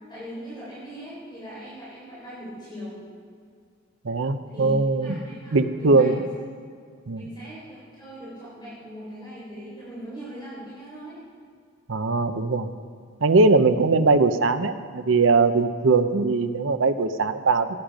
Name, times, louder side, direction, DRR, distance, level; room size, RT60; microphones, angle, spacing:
voice 1, 0.1-3.0 4.5-6.2 7.1-11.2, equal, 20° left, -10 dB, 3.9 m, -39 dB
voice 2, 4.0-5.2 5.5-6.2 7.1-7.3 11.9-12.7 13.2-17.8, right 3 dB, 70° right, 10 dB, 0.7 m, -20 dB
16.5 x 9.0 x 5.2 m, 2.1 s
head